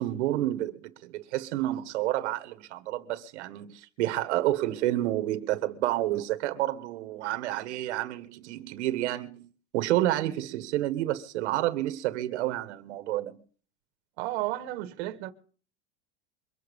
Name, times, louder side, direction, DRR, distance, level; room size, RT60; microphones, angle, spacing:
voice 1, 0.0-9.5 9.7-13.4, right 14 dB, 80° right, 1.6 m, -29 dB
voice 2, 14.2-15.3, right 16 dB, 60° right, 1.6 m, -32 dB
23.5 x 8.4 x 5.3 m
supercardioid pair, 160°, 34 cm